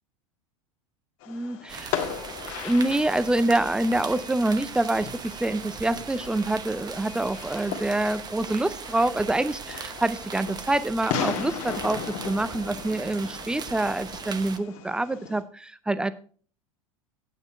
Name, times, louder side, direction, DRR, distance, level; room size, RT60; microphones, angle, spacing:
Fireworks, 1.2-15.4, left 8 dB, 50° left, 1.6 m, -37 dB
voice 1, 1.3-1.9 2.6-16.1, right 2 dB, 5° right, 15 dB, 0.6 m, -26 dB
sound 1, 1.7-14.6, right 6 dB, 25° right, 0.9 m, -39 dB
9.1 x 8.6 x 4.4 m, 0.43 s
figure-of-eight pair, 80°, 17 cm